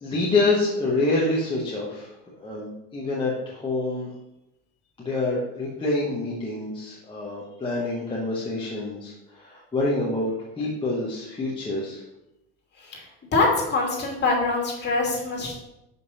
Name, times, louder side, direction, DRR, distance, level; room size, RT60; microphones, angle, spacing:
voice 1, 0.0-2.1 2.4-4.1 5.0-12.0, left 2 dB, 15° left, -5 dB, 1.5 m, -27 dB
voice 2, 13.3-15.6, left 3 dB, 35° left, -2 dB, 2.8 m, -24 dB
6.3 x 5.6 x 4.2 m, 0.91 s
supercardioid pair, 105°, 31 cm